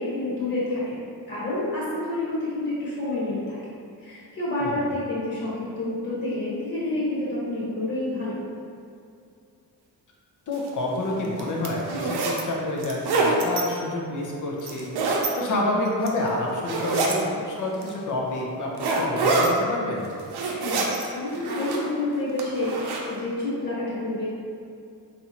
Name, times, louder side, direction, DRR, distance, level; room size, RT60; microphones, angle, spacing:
voice 1, 0.0-3.6 4.0-8.4 20.5-24.3, left 2 dB, 25° left, -10 dB, 1.3 m, -29 dB
voice 2, 10.5-14.9 15.4-20.1, left 1 dB, 45° left, -2 dB, 0.8 m, -28 dB
sound 1, 10.5-10.7 11.2-12.4 12.8-13.6 14.6-15.3 15.9-16.3 16.6-17.2 17.8-17.9 18.8-19.5 20.0-21.1 21.3-21.9 22.4-23.0, right 3 dB, 65° right, 0.6 m, -25 dB
3.4 x 2.7 x 2.8 m, 2.4 s
cardioid pair, 80°, 42 cm